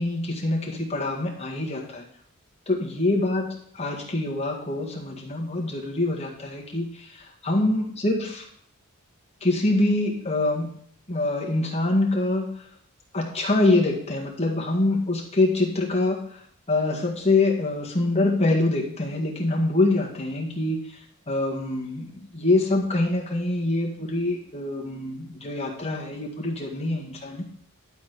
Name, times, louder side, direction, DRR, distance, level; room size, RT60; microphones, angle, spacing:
voice 1, 0.0-2.1 2.7-3.5 3.7-8.5 9.4-10.7 11.1-12.5 13.1-16.4 16.7-27.4, left 2 dB, 30° left, -2 dB, 1.8 m, -25 dB
11.5 x 4.2 x 6.6 m, 0.65 s
head